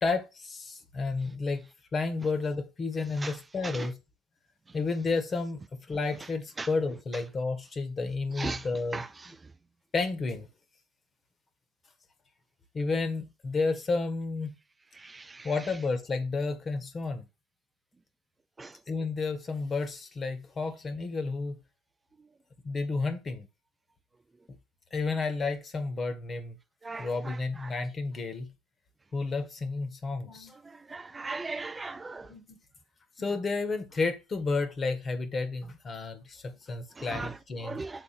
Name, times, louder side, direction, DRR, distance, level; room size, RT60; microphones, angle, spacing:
voice 1, 0.0-4.0 4.7-9.3 9.9-10.5 12.7-14.5 15.4-17.3 18.9-21.6 22.6-23.5 24.9-26.6 27.0-28.5 29.1-30.5 32.3-32.6 33.2-37.8, left 3 dB, 30° left, 1.6 m, -31 dB
voice 2, 30.9-32.2 37.2-37.3 37.6-37.9, right 3 dB, 20° right, 0.4 m, -35 dB
7.1 x 3.7 x 6.0 m
hypercardioid pair, 75°, 0 cm